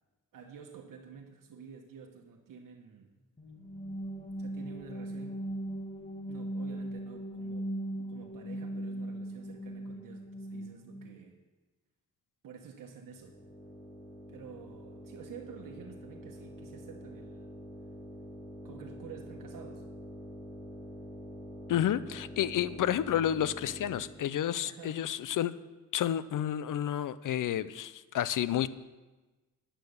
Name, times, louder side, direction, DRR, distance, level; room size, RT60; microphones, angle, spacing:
voice 1, 0.3-3.2 4.4-5.3 6.3-7.7 8.0-11.4 12.4-13.4 14.3-17.5 18.6-19.9 24.6-25.1, right 7 dB, 75° right, 2 dB, 1.2 m, -50 dB
sound 1, 3.4-11.2, right 1 dB, 20° left, 1.8 m, -39 dB
sound 2, 13.1-24.3, equal, 40° left, 4.2 m, -46 dB
voice 2, 21.7-25.5 25.9-28.7, left 11 dB, 70° left, 16 dB, 0.6 m, -30 dB
10.5 x 8.7 x 6.5 m, 1.2 s
cardioid pair, 70°, 32 cm